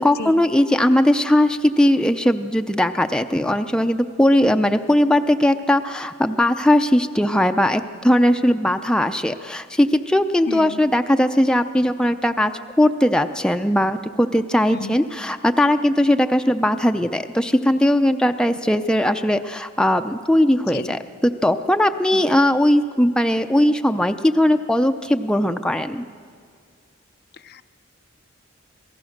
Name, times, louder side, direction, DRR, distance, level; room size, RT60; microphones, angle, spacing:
voice 1, 0.0-12.5 12.8-26.0, left 1 dB, 5° left, 6 dB, 0.5 m, -19 dB
voice 2, 10.5-10.8 14.7-15.0 20.7-20.9 22.1-22.2 27.5-27.6, left 4 dB, 55° left, 11 dB, 0.6 m, -32 dB
27.0 x 17.5 x 6.5 m, 2.1 s
head